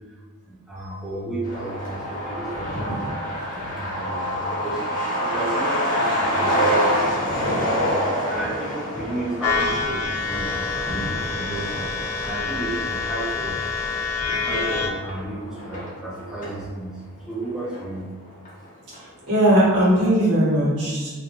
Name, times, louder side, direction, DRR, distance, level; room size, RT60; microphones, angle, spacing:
voice 1, 0.5-10.5 10.8-12.0 12.2-13.6 14.4-18.2, right 2 dB, 5° right, -7 dB, 0.4 m, -33 dB
Truck, 1.4-16.6 16.9-17.0 17.3-18.2 18.5-18.6 18.9-19.3, equal, 35° left, 0.8 m, -27 dB
sound 1, 9.4-14.9, left 4 dB, 75° left, 0.4 m, -26 dB
voice 2, 19.3-21.1, right 1 dB, 85° right, -8 dB, 1.1 m, -19 dB
2.7 x 2.1 x 2.8 m, 1.5 s
head